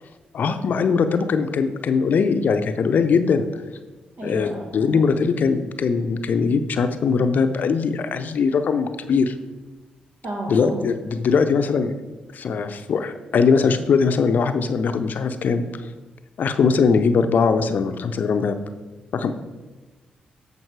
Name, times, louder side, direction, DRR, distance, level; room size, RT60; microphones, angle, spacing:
voice 1, 0.3-3.5 4.2-9.3 10.5-11.9 12.3-15.6 16.4-18.6 19.1-19.3, left 5 dB, 65° left, 9 dB, 0.6 m, -21 dB
voice 2, 4.2-5.1 10.2-10.8, right 2 dB, 65° right, -1 dB, 2.2 m, -33 dB
7.9 x 5.3 x 4.7 m, 1.2 s
supercardioid pair, 50°, 3 cm